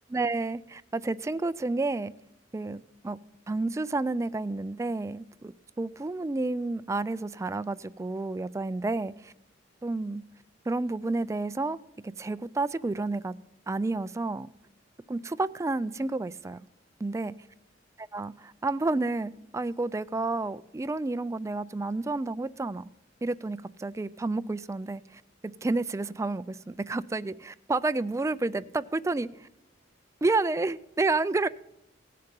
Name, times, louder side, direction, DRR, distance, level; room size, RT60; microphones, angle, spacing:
voice 1, 0.1-2.1 2.5-3.2 3.5-9.3 9.8-10.2 10.7-11.8 12.0-13.3 13.7-14.5 15.1-16.7 17.0-17.3 18.1-22.9 23.2-25.2 25.6-29.5 30.2-31.5, right 3 dB, 15° right, 0.3 m, -30 dB
17.0 x 6.7 x 5.3 m
head